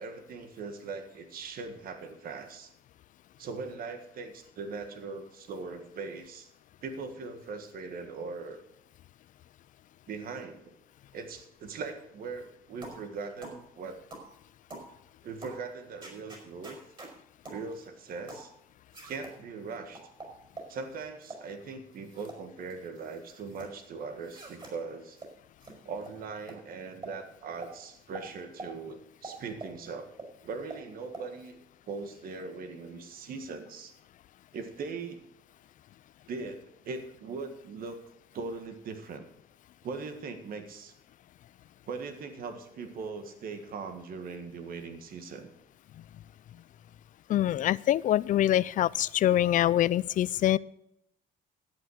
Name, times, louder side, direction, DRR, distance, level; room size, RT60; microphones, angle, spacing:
voice 1, 0.0-2.7 3.4-6.5 6.8-8.6 10.1-10.8 11.1-14.0 15.2-16.8 17.5-18.5 19.0-20.0 20.7-25.2 25.9-30.1 30.4-31.6 31.9-33.9 34.5-35.2 36.3-38.0 38.3-39.2 39.8-40.9 41.9-45.5 47.3-47.5, right 4 dB, 60° right, 8 dB, 1.6 m, -40 dB
sound 1, 12.8-13.0 13.4-13.6 14.1-14.3 14.7-14.9 15.4-15.6 16.0-17.1 17.4-17.6 18.3-18.5 18.9-19.3 19.9-20.7 21.2-21.4 21.9-22.4 22.7-23.7 24.2-24.7 25.2-25.3 25.6-25.7 26.0-26.1 26.5-26.6 27.0-27.2 27.6-27.7 28.1-28.3 28.6-28.7 29.2-29.8 30.2-30.3 30.7-30.8 31.1-31.3, right 3 dB, 30° right, 4.8 m, -44 dB
voice 2, 47.3-50.6, left 12 dB, 50° left, 21 dB, 0.4 m, -24 dB
11.5 x 8.4 x 6.4 m, 0.78 s
cardioid pair, 110°, 17 cm